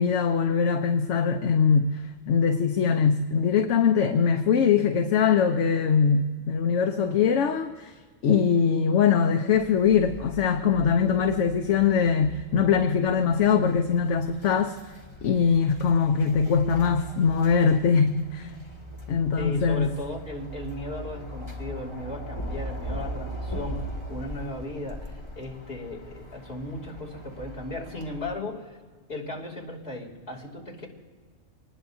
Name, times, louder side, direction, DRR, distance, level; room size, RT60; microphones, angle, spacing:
voice 1, 0.0-7.9 8.2-14.8 15.2-18.5 19.1-19.9, left 6 dB, 75° left, 5 dB, 1.1 m, -22 dB
sound 1, 9.6-28.3, equal, 25° left, 1.8 m, -40 dB
voice 2, 19.4-28.8 29.1-30.9, left 1 dB, 55° left, -3 dB, 3.1 m, -36 dB
25.5 x 20.0 x 2.7 m, 1.5 s
omnidirectional pair, 1.3 m